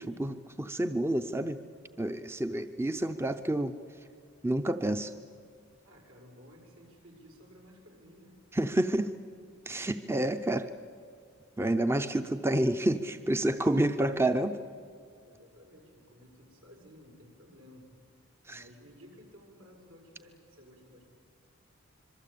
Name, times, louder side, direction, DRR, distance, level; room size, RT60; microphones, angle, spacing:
voice 1, 0.0-1.6 2.0-3.7 4.4-5.1 8.5-9.1 9.7-10.7 11.6-14.6 18.5-18.6, right 1 dB, 10° right, 9 dB, 0.6 m, -29 dB
voice 2, 5.8-8.4 15.2-17.9 18.5-21.0, equal, 80° right, 1 dB, 6.6 m, -55 dB
26.0 x 23.5 x 8.6 m, 2.3 s
head